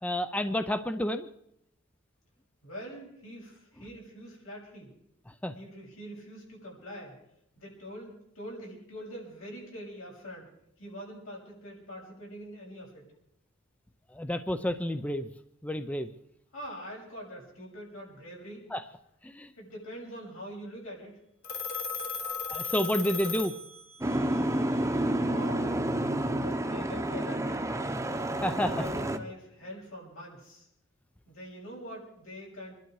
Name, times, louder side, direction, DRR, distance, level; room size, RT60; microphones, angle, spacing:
voice 1, 0.0-1.3 5.4-5.5 14.1-15.3 15.6-16.1 18.7-18.8 19.2-19.5 22.5-23.5 28.4-28.8, equal, 5° left, 10 dB, 0.6 m, -30 dB
voice 2, 2.6-4.9 5.5-7.2 7.6-10.5 10.8-13.1 16.5-18.7 19.5-21.1 25.2-25.9 26.2-28.0 28.6-30.7 31.3-32.7, equal, 85° left, -2 dB, 6.9 m, -44 dB
Telephone, 21.4-24.2, left 5 dB, 55° left, 1.7 m, -36 dB
Boat Water vehicle, 24.0-29.2, right 1 dB, 15° right, 1.0 m, -29 dB
26.0 x 12.0 x 4.7 m, 0.77 s
head